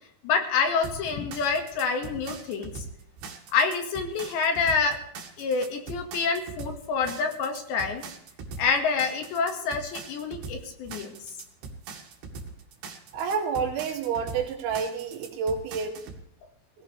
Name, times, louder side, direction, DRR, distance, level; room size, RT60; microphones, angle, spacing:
voice 1, 0.2-2.9 3.5-5.0 5.4-8.0 8.6-11.3, left 5 dB, 65° left, 5 dB, 3.8 m, -27 dB
sound 1, 0.8-16.2, right 4 dB, 65° right, 4.0 m, -41 dB
voice 2, 13.1-16.0, right 6 dB, 90° right, 2 dB, 4.9 m, -29 dB
20.5 x 16.0 x 3.4 m, 0.73 s
omnidirectional pair, 5.7 m